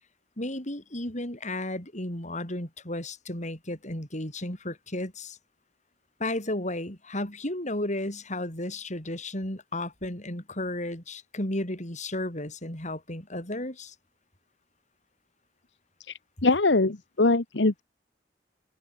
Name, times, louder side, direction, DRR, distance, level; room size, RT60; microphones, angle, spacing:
voice 1, 0.4-5.4 6.2-13.9, left 1 dB, 40° left, 7.8 m, -33 dB
voice 2, 16.4-17.8, left 3 dB, 75° left, 1.2 m, -22 dB
open air
head